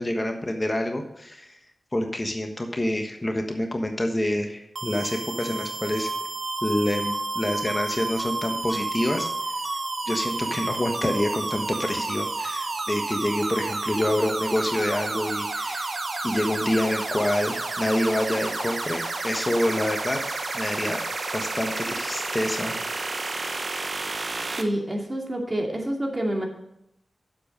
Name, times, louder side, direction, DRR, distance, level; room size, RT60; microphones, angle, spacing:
voice 1, 0.0-1.6 1.9-6.1 6.6-9.3 10.1-16.0 16.2-20.2 20.5-21.0 21.3-22.7, left 1 dB, 25° left, 4 dB, 1.3 m, -27 dB
sound 1, 4.8-24.6, right 3 dB, 60° right, 1.1 m, -30 dB
voice 2, 24.6-26.4, right 1 dB, 35° right, 0 dB, 2.5 m, -27 dB
7.7 x 7.1 x 5.3 m, 0.81 s
cardioid pair, 50°, 0 cm